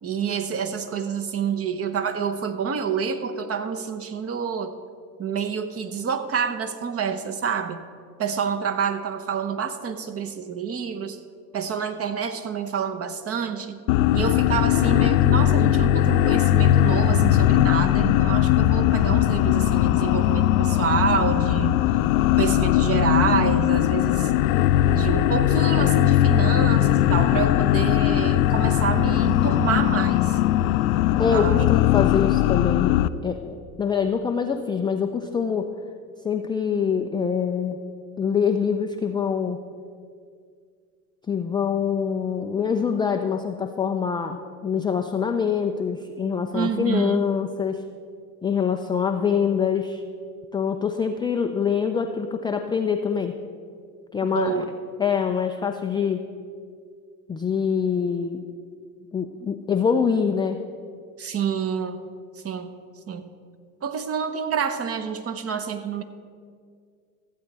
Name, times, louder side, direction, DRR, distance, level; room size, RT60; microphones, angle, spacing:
voice 1, 0.0-4.7 5.2-7.8 8.2-11.2 11.5-13.8 14.1-21.9 22.4-24.3 24.9-30.4 31.2-31.6 46.5-47.2 54.2-54.6 61.2-62.0 62.4-62.7 63.1-63.3 63.8-66.0, right 6 dB, 30° right, 8 dB, 0.9 m, -28 dB
scary sound, 13.9-33.1, left 13 dB, 65° left, 0.5 m, -20 dB
voice 2, 31.2-35.7 36.2-37.8 38.2-39.6 41.3-47.8 48.4-50.0 50.5-53.4 54.1-54.7 55.0-56.3 57.3-58.4 59.1-60.6, left 6 dB, 10° left, 5 dB, 0.3 m, -25 dB
14.5 x 8.2 x 4.2 m, 2.1 s
hypercardioid pair, 75°, 45 cm